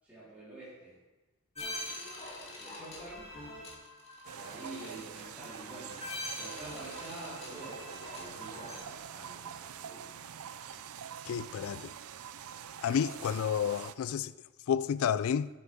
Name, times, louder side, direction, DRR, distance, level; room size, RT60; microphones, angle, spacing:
voice 1, 0.0-1.0 2.5-3.3 4.3-10.1 10.6-10.8, right 2 dB, 5° right, 3.8 m, -48 dB
sound 1, 1.5-8.8, left 1 dB, 30° left, 2.7 m, -44 dB
sound 2, 4.3-14.0, right 8 dB, 80° right, 0.5 m, -45 dB
voice 2, 11.3-11.9 12.8-14.3 14.7-15.5, left 8 dB, 70° left, 0.3 m, -30 dB
12.5 x 11.0 x 3.5 m
head